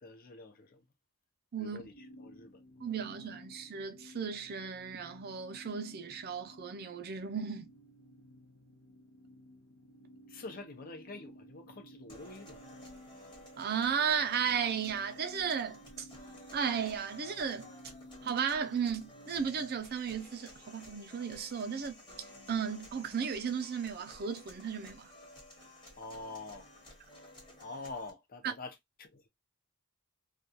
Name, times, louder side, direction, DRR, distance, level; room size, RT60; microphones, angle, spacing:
voice 1, 0.0-0.8 1.6-2.6 10.3-12.6 26.0-26.7 27.6-29.3, left 3 dB, 45° left, 0.6 m, -46 dB
voice 2, 1.5-1.9 2.8-7.7 13.6-16.1 16.5-17.7 18.2-22.0 22.5-25.1, right 7 dB, 45° right, 0.5 m, -35 dB
sound 1, 1.9-19.8, equal, 85° left, 0.7 m, -55 dB
sound 2, 12.1-28.1, left 1 dB, 20° left, 1.0 m, -54 dB
2.3 x 2.3 x 2.6 m
head